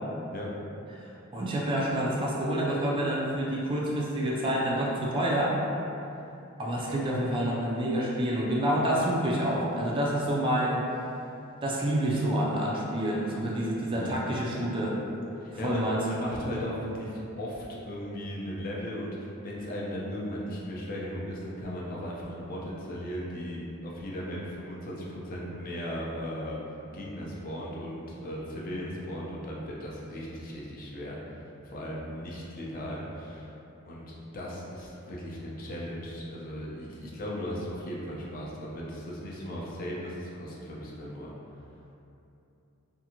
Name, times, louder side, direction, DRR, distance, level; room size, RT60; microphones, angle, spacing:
voice 1, 0.9-5.6 6.6-10.9 11.6-15.0 15.6-16.0, right 1 dB, 25° right, -4 dB, 0.3 m, -28 dB
voice 2, 15.4-26.6 26.9-33.5 33.8-41.3, equal, 40° left, -4 dB, 0.5 m, -37 dB
2.6 x 2.5 x 2.8 m, 2.8 s
head